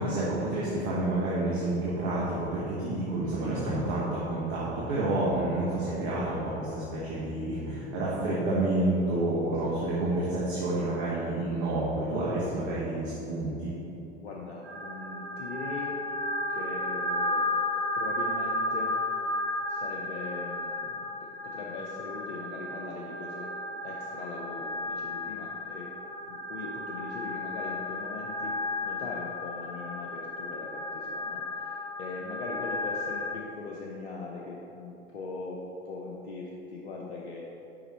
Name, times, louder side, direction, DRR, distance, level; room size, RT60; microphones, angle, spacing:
voice 1, 0.0-13.7, right 2 dB, 45° right, -7 dB, 1.4 m, -29 dB
voice 2, 14.2-16.0 16.5-17.5 17.9-19.0 19.7-23.5 23.8-25.9 26.3-37.5, left 3 dB, 80° left, -3 dB, 0.7 m, -40 dB
sound 1, 14.6-33.3, left 2 dB, 70° right, 1.4 m, -34 dB
5.4 x 4.9 x 4.2 m, 2.9 s
figure-of-eight pair, 80°, 32 cm